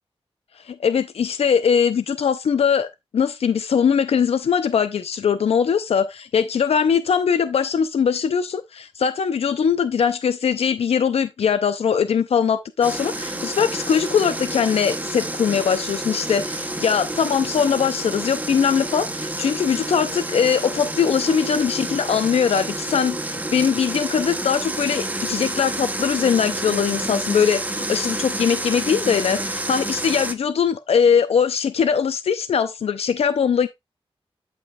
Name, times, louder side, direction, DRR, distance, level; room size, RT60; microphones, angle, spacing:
voice 1, 0.6-2.9 3.1-33.7, left 7 dB, 85° left, 0.5 m, -21 dB
sound 1, 12.8-30.3, right 1 dB, 15° right, 0.8 m, -29 dB
12.0 x 5.4 x 2.3 m
wide cardioid pair, 115°, 10 cm